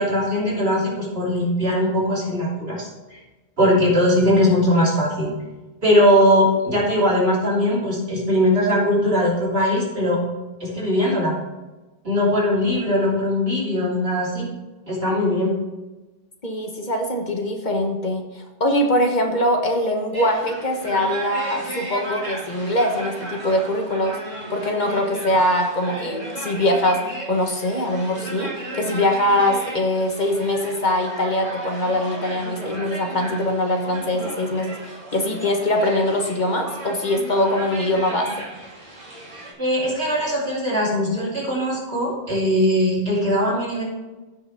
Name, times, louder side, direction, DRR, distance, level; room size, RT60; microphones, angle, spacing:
voice 1, 0.0-3.2 3.6-5.3 5.8-10.2 10.6-11.3 12.0-14.5 14.9-15.5 39.6-43.8, equal, 70° right, -5 dB, 3.3 m, -20 dB
voice 2, 16.4-24.2 24.5-27.0 27.3-38.5, left 1 dB, 45° left, 2 dB, 1.3 m, -22 dB
sound 1, 20.1-39.5, right 1 dB, 45° right, 3.4 m, -35 dB
15.5 x 5.3 x 3.5 m, 1.1 s
omnidirectional pair, 1.0 m